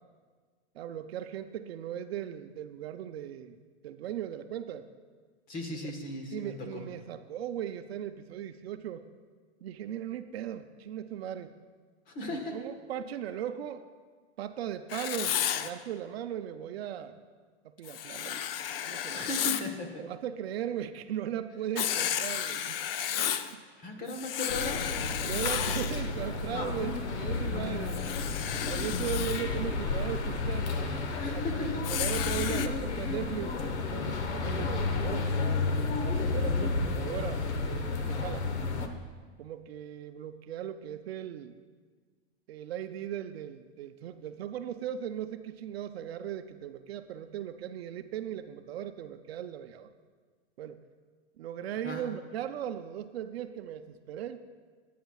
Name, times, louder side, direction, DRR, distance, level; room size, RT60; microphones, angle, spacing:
voice 1, 0.7-3.6 3.8-4.9 5.7-5.9 6.3-9.1 9.6-11.5 12.3-13.8 14.4-17.2 17.6-18.5 18.8-19.3 20.0-22.8 23.5-23.6 25.2-28.1 28.6-30.8 31.3-35.3 36.0-38.5 39.4-41.6 42.5-49.9 50.6-50.8 51.4-54.4, right 10 dB, 65° right, 9 dB, 0.7 m, -38 dB
voice 2, 5.5-6.8 12.1-12.6 19.1-20.0 23.8-24.8 31.2-31.8 51.8-52.1, left 2 dB, 25° left, 3 dB, 1.3 m, -37 dB
Writing, 14.9-15.7 17.9-19.7 21.8-23.5 24.1-26.0 27.9-29.4 31.8-32.7, left 10 dB, 60° left, 0.6 m, -33 dB
sound 1, 24.5-38.9, left 3 dB, 85° left, 1.2 m, -31 dB
20.5 x 9.2 x 2.4 m, 1.5 s
hypercardioid pair, 150°, 33 cm